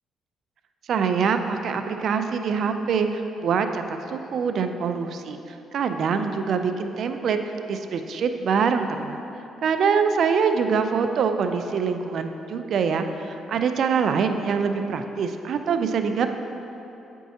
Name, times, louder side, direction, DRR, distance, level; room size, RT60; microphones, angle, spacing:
voice 1, 0.9-5.4 5.7-9.2 9.6-16.3, right 6 dB, 65° right, 7 dB, 0.3 m, -24 dB
8.2 x 4.5 x 2.8 m, 2.9 s
cardioid pair, 90°, 0 cm